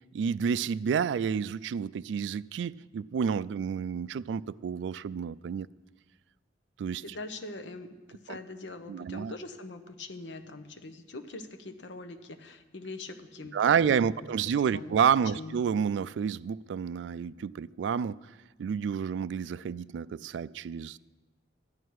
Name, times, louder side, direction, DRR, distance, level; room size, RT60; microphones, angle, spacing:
voice 1, 0.1-5.7 6.8-7.0 8.3-8.4 8.9-9.3 13.5-18.2 18.6-21.0, right 7 dB, 75° right, 0.3 m, -29 dB
voice 2, 7.0-15.0 15.3-15.6, left 2 dB, 80° left, 0.9 m, -43 dB
12.0 x 11.0 x 4.7 m
head